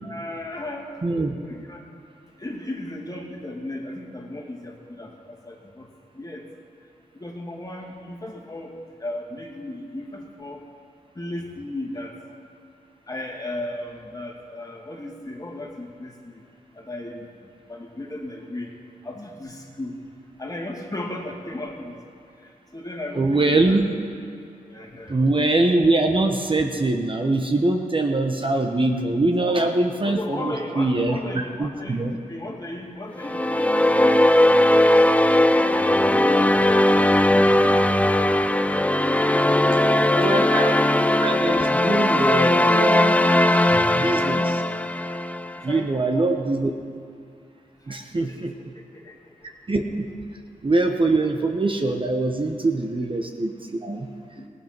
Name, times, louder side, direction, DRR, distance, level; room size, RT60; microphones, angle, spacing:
voice 1, 0.0-0.9 1.4-1.8 2.4-5.9 6.1-6.5 7.1-10.6 11.2-12.1 13.1-16.4 16.8-18.7 19.0-20.0 20.4-22.0 22.4-23.8 24.7-25.2 29.4-29.7 30.1-34.4 34.8-35.0 35.6-36.6 37.1-38.5 39.5-40.4 43.6-44.0 45.7-46.3 47.9-48.7 48.9-49.2 54.4-54.5, left 1 dB, 25° left, 0 dB, 2.2 m, -36 dB
voice 2, 1.0-1.4 23.2-23.8 25.1-32.2 40.1-40.7 41.2-43.1 43.9-44.6 45.6-46.7 47.9-48.5 49.7-50.1 50.6-54.1, right 2 dB, 35° right, 3 dB, 1.0 m, -23 dB
sound 1, 33.2-45.6, left 1 dB, 10° left, 0.4 m, -19 dB
17.0 x 8.3 x 6.0 m, 2.5 s
cardioid pair, 55°, 15 cm